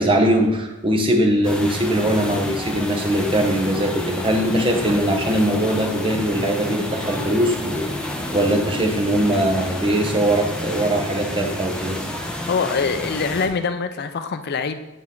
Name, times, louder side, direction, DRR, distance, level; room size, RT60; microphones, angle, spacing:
voice 1, 0.0-12.0, right 1 dB, 25° right, 2 dB, 0.8 m, -21 dB
sound 1, 1.4-13.5, left 1 dB, 5° left, 0.7 m, -30 dB
voice 2, 12.5-14.8, left 5 dB, 45° left, 10 dB, 0.4 m, -24 dB
9.3 x 4.4 x 3.8 m, 1.0 s
head